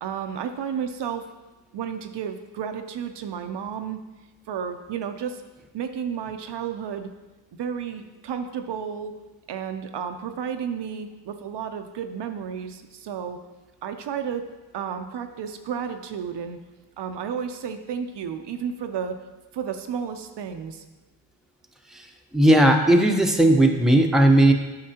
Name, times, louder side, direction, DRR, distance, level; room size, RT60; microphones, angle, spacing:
voice 1, 0.0-1.3 1.7-4.0 4.5-5.4 5.7-7.1 7.6-9.1 9.5-13.4 13.8-14.5 14.7-16.6 17.0-19.2 19.5-20.8, right 7 dB, 65° right, 7 dB, 0.6 m, -32 dB
voice 2, 22.3-24.5, right 1 dB, ahead, 2 dB, 0.8 m, -16 dB
8.6 x 5.9 x 2.8 m, 1.2 s
cardioid pair, 55°, 45 cm